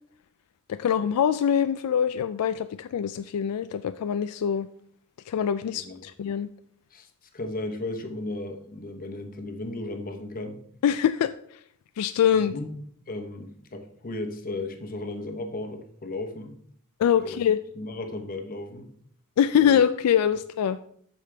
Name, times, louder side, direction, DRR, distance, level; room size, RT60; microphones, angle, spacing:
voice 1, 0.7-4.7 5.3-6.5 10.8-11.3 12.0-12.6 17.0-17.6 19.4-20.8, left 8 dB, 80° left, 12 dB, 0.3 m, -24 dB
voice 2, 5.7-6.1 6.9-7.1 7.3-10.6 12.3-12.7 13.1-16.6 17.1-17.4 17.8-18.9 19.6-19.8, left 2 dB, 40° left, 6 dB, 0.9 m, -35 dB
8.4 x 6.5 x 3.3 m, 0.62 s
head